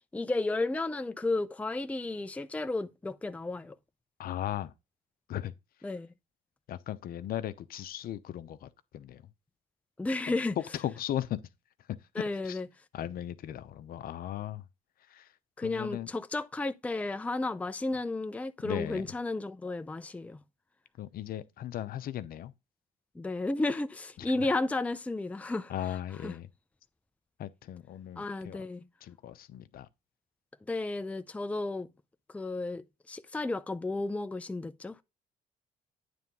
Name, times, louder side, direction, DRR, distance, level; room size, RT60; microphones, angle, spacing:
voice 1, 0.1-3.7 5.8-6.1 10.0-10.5 12.2-12.7 15.6-20.4 23.2-25.7 26.2-26.3 28.2-28.8 30.7-31.9 32.3-34.9, left 2 dB, 10° left, 0.5 m, -33 dB
voice 2, 4.2-4.7 5.3-5.5 6.7-9.3 10.6-11.4 12.1-12.6 12.9-14.6 15.1-15.3 15.6-16.1 18.6-19.1 21.0-22.5 24.2-24.5 25.7-26.5 27.4-28.6 29.0-29.9, left 11 dB, 60° left, 0.8 m, -37 dB
9.3 x 3.4 x 5.3 m
cardioid pair, 110°, 17 cm